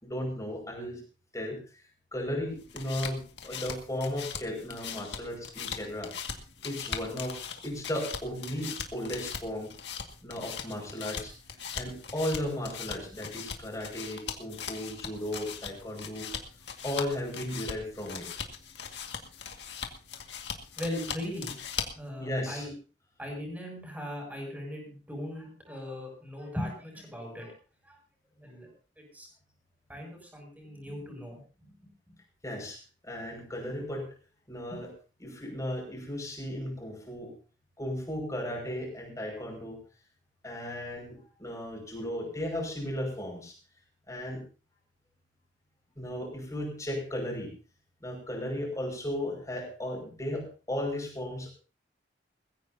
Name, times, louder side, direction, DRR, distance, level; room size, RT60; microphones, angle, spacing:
voice 1, 0.0-1.0 1.3-1.8 2.1-6.1 6.6-9.7 10.2-11.3 11.7-16.3 16.8-18.3 22.2-22.7 32.4-34.1 34.5-34.9 35.2-37.3 37.8-39.8 40.4-43.5 44.1-44.4 46.0-47.5 48.0-51.5, left 1 dB, 20° left, 0 dB, 5.9 m, -35 dB
sound 1, 2.5-22.1, left 6 dB, 70° left, 2.0 m, -40 dB
voice 2, 20.8-21.5 22.0-22.7 23.2-27.5 27.9-28.0 28.4-28.7 29.0-29.3 29.9-31.7 32.1-32.2, left 1 dB, 10° right, 0 dB, 7.5 m, -39 dB
21.5 x 15.5 x 2.8 m, 0.36 s
head